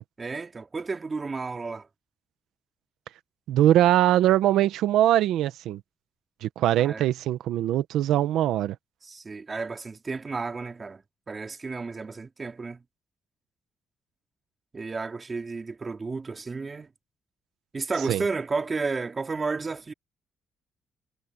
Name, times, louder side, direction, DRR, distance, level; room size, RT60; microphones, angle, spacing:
voice 1, 0.2-1.9 6.7-7.1 9.0-12.8 14.7-16.9 17.7-19.9, right 4 dB, 30° right, 2.5 m, -32 dB
voice 2, 3.5-5.8 6.4-8.8 18.1-18.2, right 12 dB, 85° right, 1.1 m, -22 dB
cardioid pair, 90°, 0 cm